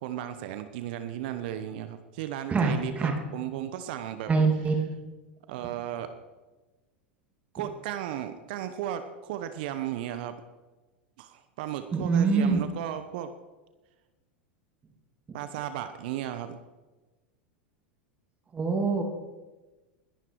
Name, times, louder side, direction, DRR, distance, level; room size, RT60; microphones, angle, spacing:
voice 1, 0.0-4.3 5.5-6.1 7.5-10.4 11.2-13.3 15.3-16.6, right 11 dB, 60° right, 10 dB, 1.1 m, -35 dB
voice 2, 2.5-3.1 4.3-4.8 11.9-12.6 18.5-19.0, right 4 dB, 25° right, 3 dB, 2.6 m, -24 dB
21.0 x 11.0 x 4.7 m, 1.2 s
hypercardioid pair, 90°, 6 cm